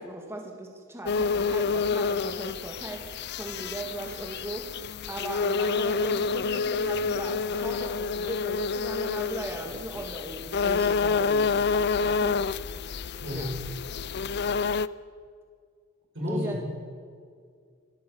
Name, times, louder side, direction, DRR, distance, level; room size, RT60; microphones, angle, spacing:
voice 1, 0.0-4.8 5.1-12.4 13.3-13.5 16.2-16.6, right 1 dB, 15° right, 1 dB, 2.0 m, -38 dB
sound 1, 1.1-14.9, left 5 dB, 55° left, 0.5 m, -28 dB
voice 2, 13.2-13.5 16.1-16.7, left 1 dB, 65° right, -2 dB, 7.4 m, -31 dB
26.5 x 14.0 x 7.2 m, 2.1 s
head